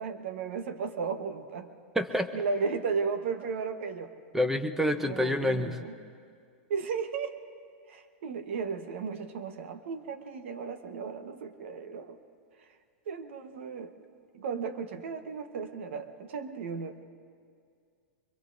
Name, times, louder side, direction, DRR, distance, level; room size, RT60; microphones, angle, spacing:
voice 1, 0.0-1.7 2.3-4.1 5.0-5.9 6.7-7.4 7.9-12.2 13.1-13.9 14.3-17.0, right 5 dB, 75° right, 8 dB, 1.2 m, -35 dB
voice 2, 1.9-2.4 4.3-5.8, left 1 dB, 5° right, 8 dB, 0.8 m, -28 dB
24.0 x 22.5 x 2.6 m, 2.2 s
hypercardioid pair, 135°, 7 cm